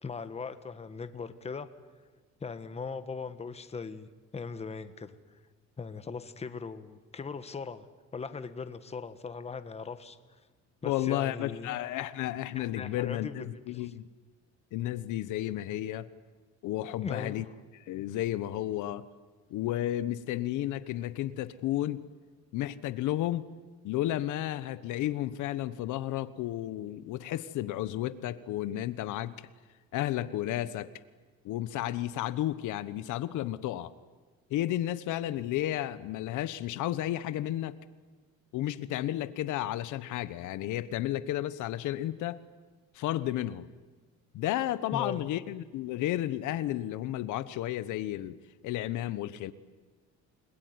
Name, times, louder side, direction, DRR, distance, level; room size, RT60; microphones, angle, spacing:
voice 1, 0.0-1.7 2.4-5.2 5.8-7.9 8.1-10.2 10.8-12.1 12.5-13.9 17.0-17.5 44.9-45.3, left 5 dB, 20° left, 10 dB, 1.4 m, -39 dB
voice 2, 10.8-14.0 14.7-16.1 16.6-17.5 17.9-19.0 19.5-22.0 22.5-23.4 23.8-29.4 29.9-30.9 31.4-33.9 34.5-37.7 38.5-42.4 42.9-43.7 44.3-48.4 48.6-49.5, left 13 dB, 85° left, 14 dB, 1.2 m, -32 dB
29.5 x 21.0 x 9.6 m, 1.4 s
cardioid pair, 145°, 30 cm